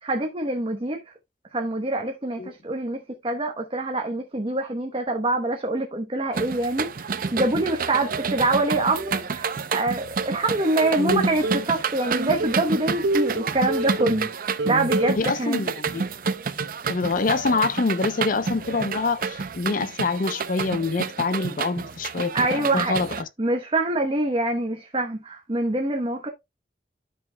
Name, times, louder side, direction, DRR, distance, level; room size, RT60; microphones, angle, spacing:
voice 1, 0.0-1.0 1.5-15.6 22.3-23.0 23.4-26.3, right 2 dB, 30° right, 0.9 m, -25 dB
sound 1, 6.3-23.2, right 5 dB, 50° right, 0.6 m, -29 dB
sound 2, 10.8-11.7 12.1-14.3 14.6-15.2, right 1 dB, 85° right, 0.8 m, -27 dB
voice 2, 11.0-11.4 15.2-16.1 16.9-23.3, left 3 dB, 50° left, 0.5 m, -26 dB
12.5 x 5.5 x 2.2 m
head